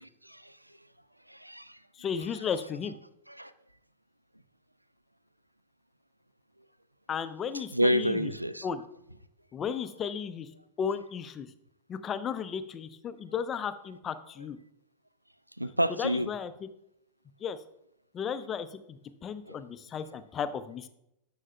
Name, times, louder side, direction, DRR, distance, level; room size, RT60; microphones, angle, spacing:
voice 1, 0.0-0.5 1.3-1.8 3.3-3.5 7.7-8.7 15.6-16.3 19.5-19.6, equal, 90° right, 15 dB, 0.3 m, -29 dB
voice 2, 2.0-2.9 7.1-8.3 8.6-8.8 9.5-10.5 10.8-11.5 11.9-14.6 16.0-16.5 17.4-17.6 18.1-20.9, left 7 dB, 25° left, 12 dB, 0.5 m, -34 dB
11.0 x 6.3 x 2.2 m, 0.80 s
figure-of-eight pair, 90°, 0 cm